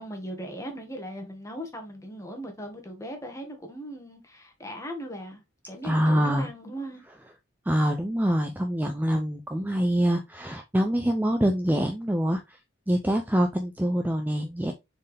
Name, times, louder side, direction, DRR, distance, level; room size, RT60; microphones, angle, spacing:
voice 1, 0.0-7.0, equal, 15° left, 1.7 m, -38 dB
voice 2, 5.8-6.5 7.6-12.6 12.9-14.7, equal, 10° right, 0.6 m, -25 dB
6.7 x 4.6 x 3.5 m
head